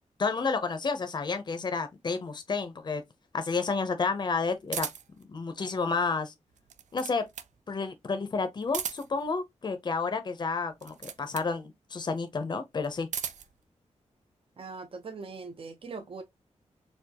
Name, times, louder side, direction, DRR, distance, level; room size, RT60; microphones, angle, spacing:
voice 1, 0.2-3.0 3.3-4.9 5.3-6.3 6.9-7.3 7.7-13.1, left 4 dB, 35° left, 0.6 m, -30 dB
sound 1, 4.7-5.2 6.5-7.6 8.6-9.3 10.7-11.5 12.8-13.6, right 8 dB, 85° right, 0.5 m, -37 dB
voice 2, 14.6-16.2, right 4 dB, 50° right, 0.7 m, -41 dB
4.4 x 2.4 x 2.8 m
wide cardioid pair, 130°, 12 cm